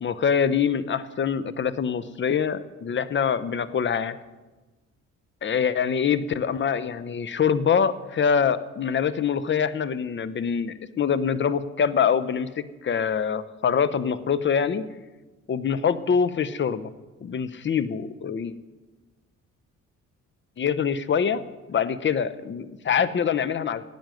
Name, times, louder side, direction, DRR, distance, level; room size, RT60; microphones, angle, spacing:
voice 1, 0.0-4.2 5.4-14.8 15.5-16.9 17.2-18.5 20.6-21.4 21.7-23.8, left 7 dB, 40° left, 15 dB, 0.7 m, -24 dB
10.5 x 8.8 x 7.7 m, 1.2 s
cardioid pair, 90°, 30 cm